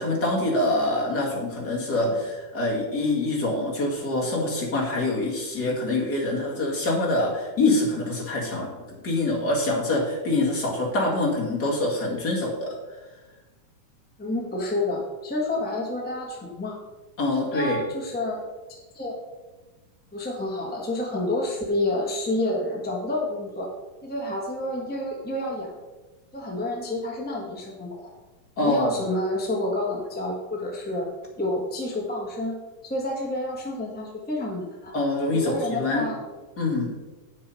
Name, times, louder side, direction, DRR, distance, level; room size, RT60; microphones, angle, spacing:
voice 1, 0.0-12.8 17.2-17.8 28.6-29.0 34.9-36.0 36.6-37.0, left 2 dB, 35° left, -3 dB, 2.2 m, -25 dB
voice 2, 14.2-16.8 17.3-18.4 18.7-19.2 20.1-23.7 24.0-25.7 26.3-28.1 28.6-31.1 31.4-34.9 35.3-36.2, left 1 dB, 10° left, -2 dB, 0.4 m, -29 dB
9.3 x 6.3 x 5.6 m, 1.2 s
omnidirectional pair, 3.6 m